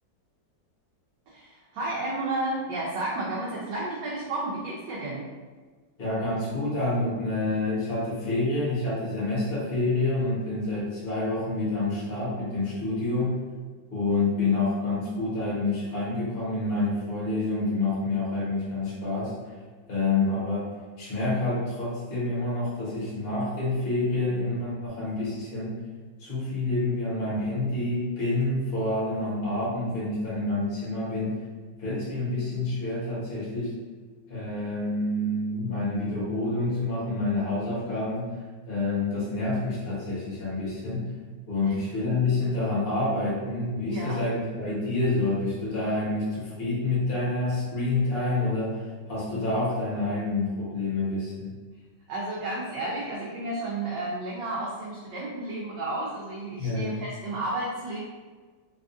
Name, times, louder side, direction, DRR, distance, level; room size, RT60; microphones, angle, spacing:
voice 1, 1.3-5.2 41.6-41.8 43.8-44.2 52.1-58.0, right 2 dB, 75° right, -5 dB, 1.3 m, -32 dB
voice 2, 6.0-13.4 13.9-19.3 19.9-20.7 21.0-25.8 26.2-31.4 31.8-33.7 34.3-38.3 38.7-41.1 41.5-51.5 56.6-56.9, left 2 dB, 35° left, -9 dB, 1.1 m, -28 dB
4.0 x 2.4 x 2.5 m, 1.4 s
omnidirectional pair, 2.0 m